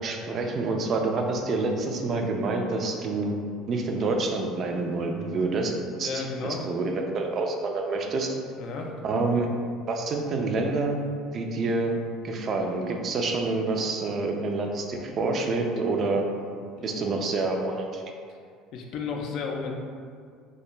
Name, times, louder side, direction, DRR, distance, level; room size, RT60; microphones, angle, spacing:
voice 1, 0.0-3.4 3.7-8.4 9.0-9.5 9.9-11.0 11.3-12.0 12.2-16.3 16.8-18.0, right 3 dB, 45° right, 2 dB, 0.3 m, -27 dB
voice 2, 5.9-6.7 8.6-8.9 16.8-17.2 18.3-18.4 18.7-19.7, left 4 dB, 60° left, 1 dB, 0.3 m, -33 dB
2.4 x 2.2 x 2.9 m, 2.1 s
supercardioid pair, 100°, 0 cm